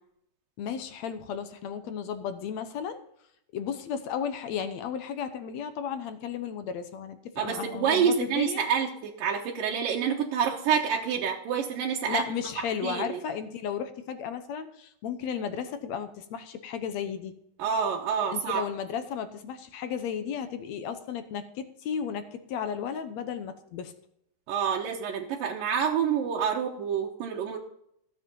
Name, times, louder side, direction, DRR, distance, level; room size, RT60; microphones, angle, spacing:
voice 1, 0.6-3.0 3.5-8.6 12.1-17.3 18.3-23.9, left 7 dB, 70° left, 10 dB, 1.8 m, -34 dB
voice 2, 7.4-12.2 12.8-13.2 17.6-18.7 24.5-27.6, right 7 dB, 90° right, -1 dB, 2.9 m, -27 dB
15.0 x 7.6 x 5.4 m, 0.72 s
omnidirectional pair, 3.9 m